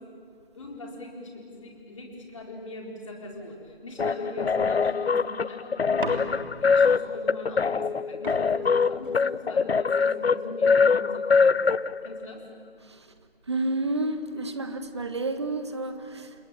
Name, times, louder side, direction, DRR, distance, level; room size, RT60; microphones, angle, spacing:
voice 1, 0.5-6.2 6.6-11.6 12.0-12.4, left 2 dB, 30° left, -1 dB, 4.4 m, -41 dB
sound 1, 4.0-12.2, left 5 dB, 85° left, 0.6 m, -23 dB
sound 2, 6.0-6.7 7.9-8.0 8.2-9.7 10.5-10.9, right 1 dB, 55° right, 3.4 m, -38 dB
voice 2, 13.5-16.3, right 2 dB, 25° right, 9 dB, 1.3 m, -30 dB
29.0 x 21.0 x 8.7 m, 2.4 s
figure-of-eight pair, 165°, 30 cm